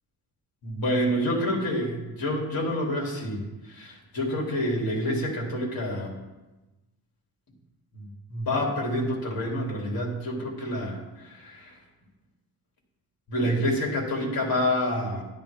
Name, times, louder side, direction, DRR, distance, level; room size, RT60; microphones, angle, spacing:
voice 1, 0.6-6.1 7.9-11.7 13.3-15.2, equal, 55° left, -1 dB, 2.9 m, -28 dB
11.5 x 11.5 x 3.5 m, 1.1 s
wide cardioid pair, 145°, 43 cm